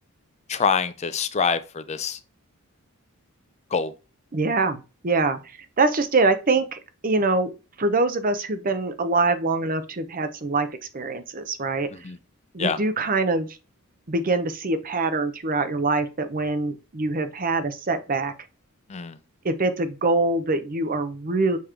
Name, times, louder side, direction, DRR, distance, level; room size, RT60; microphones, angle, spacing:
voice 1, 0.5-2.2 3.7-3.9 12.0-12.2 12.6-12.8 18.9-19.2, left 5 dB, 30° left, 0.4 m, -25 dB
voice 2, 4.3-5.4 5.8-7.5 7.8-10.7 10.9-11.9 12.5-13.5 14.1-18.3 19.4-21.6, right 3 dB, 40° right, 0.7 m, -24 dB
7.0 x 3.0 x 4.8 m
head